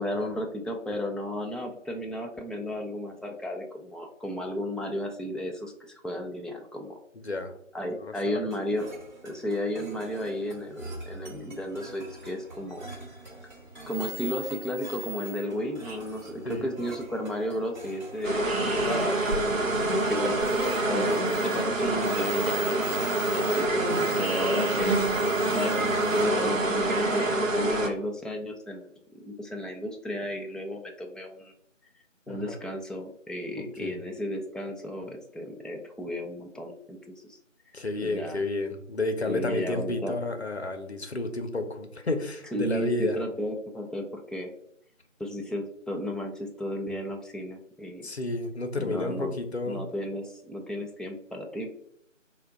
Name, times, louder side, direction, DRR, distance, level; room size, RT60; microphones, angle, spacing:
voice 1, 0.0-7.0 7.7-8.9 9.2-12.9 13.9-19.4 20.0-25.0 25.5-28.9 29.2-31.5 32.3-37.4 38.0-38.4 39.3-40.1 42.5-44.5 45.2-48.1 48.8-49.3 49.7-51.7, left 1 dB, ahead, 1 dB, 0.3 m, -33 dB
voice 2, 7.1-7.5 8.0-8.5 16.4-16.7 23.7-24.2 32.3-32.6 33.6-34.0 37.7-43.2 48.0-49.8, left 2 dB, 55° left, 6 dB, 0.6 m, -31 dB
sound 1, 8.5-24.5, right 2 dB, 35° right, 1.0 m, -46 dB
sound 2, 13.2-13.6 13.9-17.4 17.8-17.9 18.2-19.6 20.0-27.3, equal, 50° right, 0.6 m, -43 dB
sound 3, 18.2-27.9, right 2 dB, 80° right, 0.9 m, -26 dB
4.5 x 2.2 x 3.5 m, 0.72 s
figure-of-eight pair, 165°, 39 cm